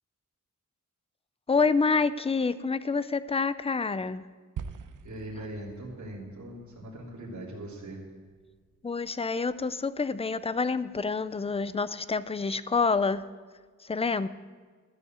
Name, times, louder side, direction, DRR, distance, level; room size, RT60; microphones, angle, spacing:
voice 1, 1.5-4.2 8.8-13.2 13.8-14.3, left 4 dB, 20° left, 15 dB, 0.4 m, -27 dB
sound 1, 4.6-8.9, right 7 dB, 85° right, 0.8 m, -45 dB
voice 2, 5.0-8.1, right 1 dB, 70° right, -5 dB, 3.1 m, -40 dB
13.5 x 7.0 x 9.3 m, 1.5 s
wide cardioid pair, 140°, 30 cm